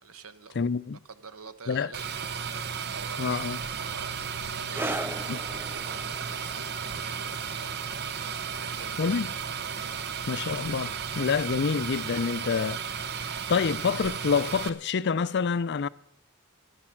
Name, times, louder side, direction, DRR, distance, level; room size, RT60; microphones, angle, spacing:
voice 1, 0.0-0.6 1.1-2.6 2.9-4.1 4.5-7.5 8.6-9.1 9.9-10.0, right 5 dB, 75° right, 1.1 m, -47 dB
voice 2, 0.6-1.0 1.7-1.9 3.2-3.6 5.3-5.4 9.0-9.3 10.3-15.9, left 5 dB, 50° left, 0.4 m, -27 dB
sound 1, 1.9-14.7, right 7 dB, 50° right, 0.8 m, -34 dB
sound 2, 4.7-11.7 11.9-12.2 12.9-13.0, right 1 dB, 10° right, 0.5 m, -40 dB
16.0 x 12.0 x 5.9 m
head